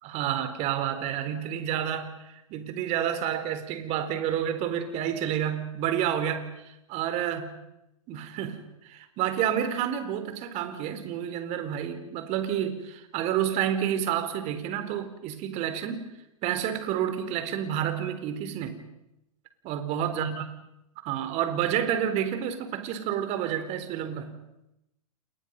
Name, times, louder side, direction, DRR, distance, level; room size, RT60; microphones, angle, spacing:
voice 1, 0.0-7.5 8.1-8.6 8.8-16.1 16.4-18.8 19.6-20.4 21.0-24.3, right 10 dB, 35° right, 9 dB, 4.1 m, -29 dB
30.0 x 28.0 x 5.5 m, 0.88 s
hypercardioid pair, 115°, 19 cm